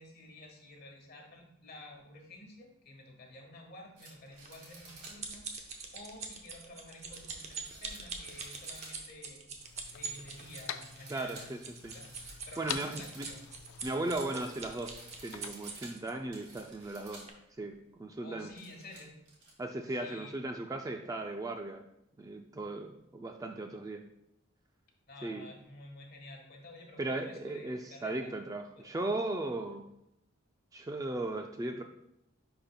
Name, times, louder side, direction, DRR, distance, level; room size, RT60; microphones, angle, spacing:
voice 1, 0.0-9.4 9.9-11.6 11.9-12.2 12.4-13.5 18.2-19.1 19.9-20.4 25.1-28.3 28.7-28.9, left 2 dB, 45° left, 1 dB, 1.4 m, -51 dB
sound 1, 4.0-5.2 5.7-5.8 7.0-9.2 9.6-10.0 10.3-17.3 17.7-17.8 18.3-19.5, right 2 dB, 60° right, 2.1 m, -53 dB
sound 2, 4.5-16.1 16.8-16.9 17.3-17.4, right 4 dB, 30° right, 0.7 m, -43 dB
sound 3, 9.6-15.5, left 10 dB, 85° left, 0.4 m, -46 dB
voice 2, 11.1-11.6 11.8-11.9 12.6-13.3 13.8-18.5 19.6-21.9 22.2-24.1 25.2-25.5 27.0-29.9 30.7-31.8, right 2 dB, 15° right, 4 dB, 0.3 m, -37 dB
10.0 x 4.3 x 2.2 m, 0.82 s
head